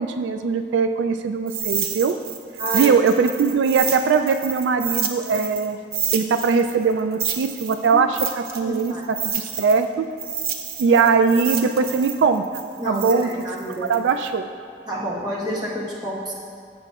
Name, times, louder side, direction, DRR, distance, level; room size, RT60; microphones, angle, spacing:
voice 1, 0.0-2.2 2.7-5.8 6.1-8.9 9.2-10.1 10.8-13.3 13.9-14.5, right 5 dB, 80° right, 7 dB, 0.3 m, -21 dB
sound 1, 1.5-5.7 5.9-9.8 10.2-14.3, right 7 dB, 55° right, 0.7 m, -29 dB
voice 2, 2.6-3.0 7.9-8.0 8.7-9.0 12.8-13.9 14.9-16.3, equal, 25° right, -5 dB, 1.3 m, -28 dB
13.5 x 7.6 x 2.4 m, 2.3 s
head